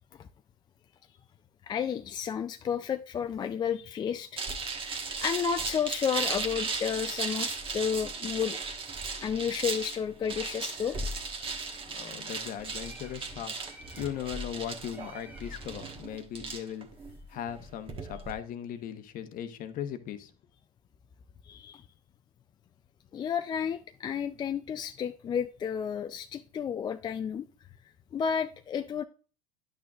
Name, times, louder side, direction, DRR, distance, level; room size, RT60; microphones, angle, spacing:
voice 1, 1.6-4.4 5.2-8.6 9.2-11.0 21.4-21.8 23.1-27.5 28.1-29.0, left 7 dB, 20° left, 0.3 m, -32 dB
sound 1, 4.4-18.3, right 4 dB, 25° right, 1.3 m, -36 dB
Bird, 10.2-16.3, right 1 dB, 10° right, 1.1 m, -55 dB
voice 2, 11.9-16.9 17.3-20.3, left 10 dB, 45° left, 1.0 m, -38 dB
10.0 x 6.1 x 2.4 m
supercardioid pair, 110°, 20 cm